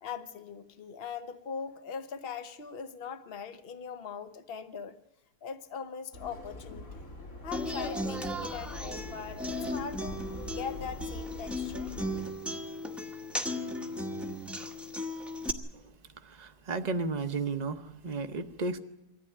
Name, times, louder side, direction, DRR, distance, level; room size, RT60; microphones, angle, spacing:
voice 1, 0.0-5.0 5.4-7.1 7.4-10.2 10.5-11.9, left 6 dB, 40° left, 1.2 m, -41 dB
Subway metro underground, 6.1-12.2, left 2 dB, 60° left, 3.2 m, -44 dB
Human voice / Acoustic guitar, 7.5-15.5, left 1 dB, ahead, 1.0 m, -36 dB
voice 2, 16.2-18.8, right 3 dB, 30° right, 1.0 m, -34 dB
23.5 x 14.5 x 9.9 m
omnidirectional pair, 1.6 m